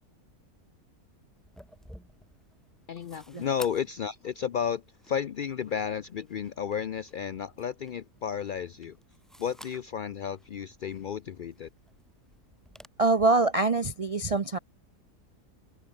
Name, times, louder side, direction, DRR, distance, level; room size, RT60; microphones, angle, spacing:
sound 1, 1.3-12.9, equal, ahead, 2.1 m, -54 dB
voice 1, 2.9-9.0 9.4-11.7, left 8 dB, 80° left, 0.4 m, -33 dB
voice 2, 13.0-14.6, right 3 dB, 50° right, 0.4 m, -24 dB
omnidirectional pair, 1.6 m